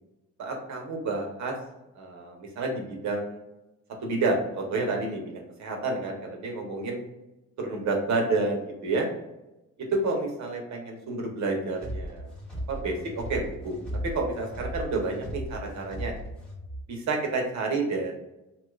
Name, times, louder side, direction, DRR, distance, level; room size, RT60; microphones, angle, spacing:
voice 1, 0.4-1.6 2.0-3.4 4.0-7.0 7.6-9.1 9.9-12.3 12.7-16.1 16.9-18.1, right 3 dB, 65° right, 1 dB, 1.0 m, -29 dB
sound 1, 11.8-16.8, equal, 5° left, 1.1 m, -37 dB
2.9 x 2.4 x 3.1 m, 0.95 s
cardioid pair, 90°, 30 cm